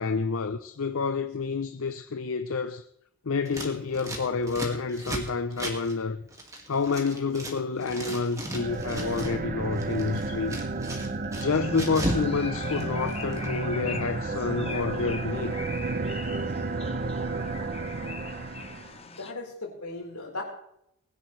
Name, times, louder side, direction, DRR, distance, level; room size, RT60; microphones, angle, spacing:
voice 1, 0.0-2.9 3.2-6.2 6.7-10.6 11.4-15.6, left 4 dB, 65° left, 0.6 m, -29 dB
Scissors, 3.4-7.5 7.8-9.4 9.7-12.3 12.5-13.5, right 1 dB, 15° right, 2.0 m, -36 dB
sound 1, 8.5-19.0, right 3 dB, 40° right, 0.6 m, -32 dB
sound 2, 11.5-19.3, left 5 dB, 25° left, 0.8 m, -42 dB
voice 2, 19.0-20.4, left 2 dB, 85° left, 4.3 m, -37 dB
20.5 x 10.5 x 3.2 m
head